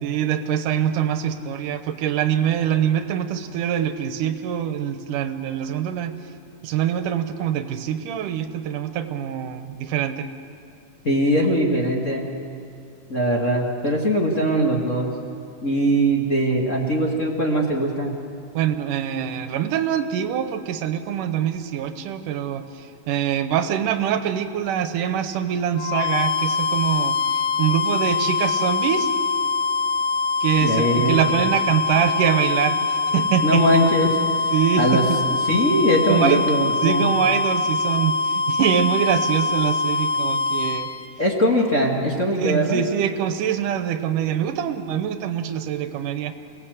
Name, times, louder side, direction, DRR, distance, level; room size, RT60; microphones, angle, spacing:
voice 1, 0.0-6.2 6.6-10.3 18.5-29.1 30.4-33.7 34.5-35.2 36.1-36.4 36.8-40.9 42.4-46.3, right 9 dB, 90° right, 9 dB, 2.7 m, -24 dB
voice 2, 11.0-12.4 13.1-15.2 15.6-18.2 30.6-31.2 33.4-34.2 34.8-37.1 41.2-42.8, equal, 30° left, 0 dB, 1.8 m, -21 dB
sound 1, 25.8-41.1, left 4 dB, 70° left, 1.5 m, -23 dB
28.0 x 18.5 x 8.1 m, 2.5 s
omnidirectional pair, 3.6 m